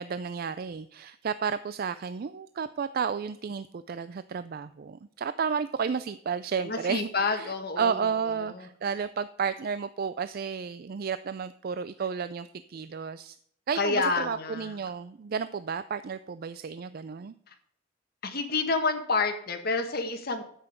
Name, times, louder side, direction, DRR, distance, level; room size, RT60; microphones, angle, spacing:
voice 1, 0.0-13.4 13.7-17.3, right 6 dB, 50° right, 14 dB, 0.4 m, -32 dB
voice 2, 6.6-8.7 13.7-14.7 17.5-17.6 18.2-20.4, left 4 dB, 55° left, 6 dB, 1.5 m, -29 dB
9.7 x 8.0 x 5.0 m, 0.65 s
head